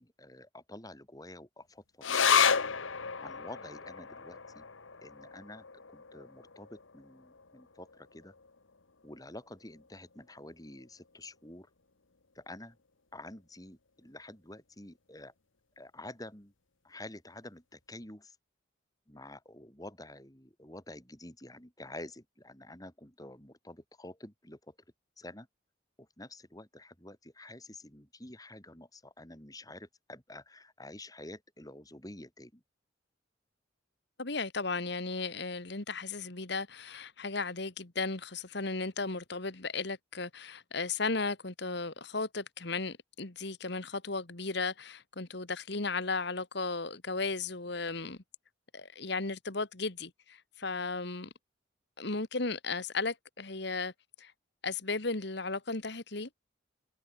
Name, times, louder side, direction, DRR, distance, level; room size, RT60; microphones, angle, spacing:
voice 1, 0.0-1.8 2.1-2.6 3.2-4.6 5.0-5.6 5.9-8.3 9.0-11.7 12.4-12.8 13.1-15.3 15.8-16.5 16.8-18.4 19.1-24.7 25.2-25.5 26.0-32.6, left 1 dB, 20° left, 5.6 m, -49 dB
sound 1, 2.0-8.8 9.1-9.2 9.5-10.2 10.8-10.9, left 6 dB, 85° left, 1.5 m, -32 dB
voice 2, 34.2-48.2 48.7-51.3 52.0-53.9 54.2-54.3 54.6-56.3, left 3 dB, 60° left, 1.7 m, -35 dB
head